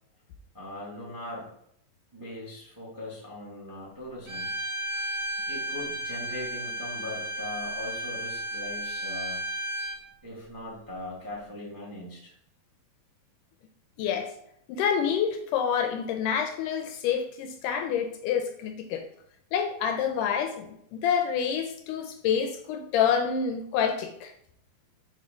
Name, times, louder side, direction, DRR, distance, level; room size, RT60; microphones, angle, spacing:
voice 1, 0.5-1.5 2.1-4.5 5.5-9.4 10.2-12.3, left 1 dB, 25° right, -5 dB, 0.4 m, -40 dB
Bowed string instrument, 4.3-10.0, right 1 dB, 55° right, 1.5 m, -33 dB
voice 2, 14.0-14.3 14.7-19.0 19.5-24.3, left 7 dB, 80° left, 5 dB, 1.9 m, -27 dB
6.7 x 3.0 x 5.0 m, 0.72 s
omnidirectional pair, 4.1 m